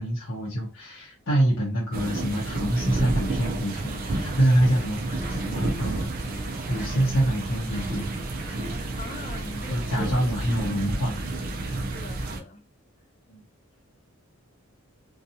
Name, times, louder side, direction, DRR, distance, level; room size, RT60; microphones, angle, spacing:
voice 1, 0.0-6.1 6.7-8.1 9.7-11.2 11.6-11.8 13.3-13.4, right 1 dB, 60° left, 0.7 m, -26 dB
sound 1, 1.9-12.4, right 2 dB, 40° right, 0.4 m, -31 dB
sound 2, 3.2-11.7, right 1 dB, 5° right, 1.0 m, -43 dB
voice 2, 9.0-10.1 11.9-12.6, left 1 dB, 30° left, 0.4 m, -41 dB
2.6 x 2.3 x 2.7 m
head